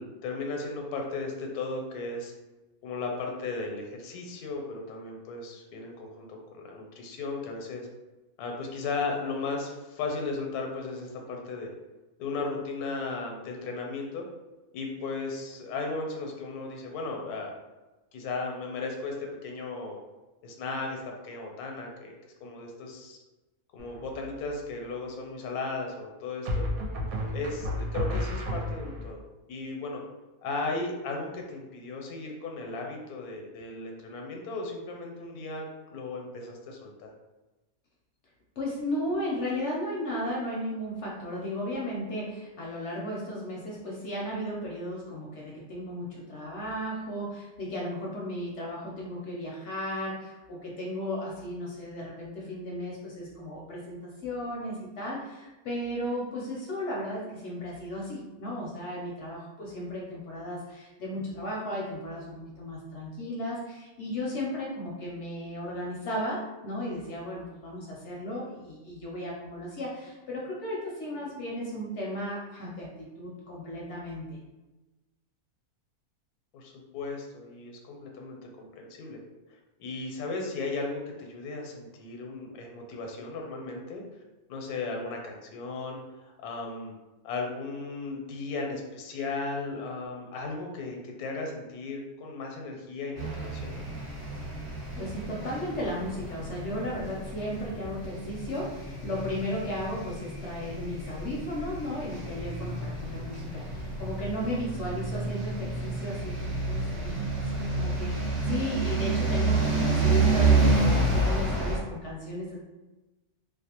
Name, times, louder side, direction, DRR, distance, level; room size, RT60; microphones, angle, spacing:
voice 1, 0.0-2.3 2.8-7.9 8.4-11.7 12.2-14.3 14.7-17.6 18.1-20.0 20.4-22.1 22.4-23.2 23.7-26.7 27.3-29.2 29.5-30.0 30.4-37.1 76.5-79.2 79.8-84.0 84.5-86.9 87.2-93.8, left 3 dB, 85° left, 1 dB, 1.1 m, -36 dB
sound 1, 23.8-24.3 26.5-29.1, left 1 dB, 75° right, 1.0 m, -31 dB
voice 2, 38.6-74.4 95.0-112.6, left 1 dB, 65° left, -3 dB, 0.7 m, -35 dB
sound 2, 93.2-111.8, right 3 dB, 40° right, 1.1 m, -29 dB
2.5 x 2.1 x 2.8 m, 1.1 s
omnidirectional pair, 1.6 m